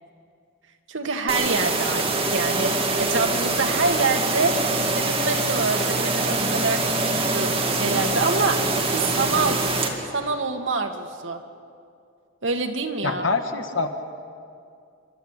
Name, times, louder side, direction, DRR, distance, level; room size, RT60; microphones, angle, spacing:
voice 1, 0.9-4.6 4.9-9.6 10.1-11.4 12.4-13.3, right 4 dB, 70° right, 5 dB, 1.8 m, -26 dB
sound 1, 1.3-9.9, right 3 dB, 30° right, 2.2 m, -24 dB
voice 2, 13.0-13.9, left 3 dB, 85° left, 6 dB, 1.7 m, -25 dB
28.5 x 11.5 x 8.9 m, 2.4 s
head